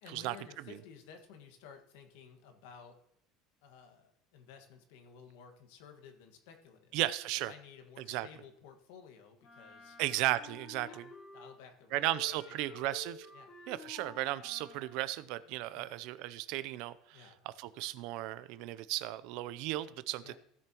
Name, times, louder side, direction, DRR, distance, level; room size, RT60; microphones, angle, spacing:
voice 1, 0.0-3.0 3.6-7.0 7.5-10.0 10.8-11.1 11.3-12.9 13.3-13.5 15.7-16.0 17.1-17.4 20.2-20.4, left 7 dB, 80° left, 6 dB, 1.6 m, -55 dB
voice 2, 6.9-7.5 8.1-8.3 10.0-11.1 11.9-13.3 13.7-20.4, right 16 dB, 65° right, 16 dB, 0.5 m, -35 dB
Wind instrument woodwind instrument, 9.4-11.6 11.9-15.0, left 3 dB, 25° left, 2.4 m, -52 dB
16.0 x 7.0 x 3.0 m, 0.74 s
cardioid pair, 155°, 0 cm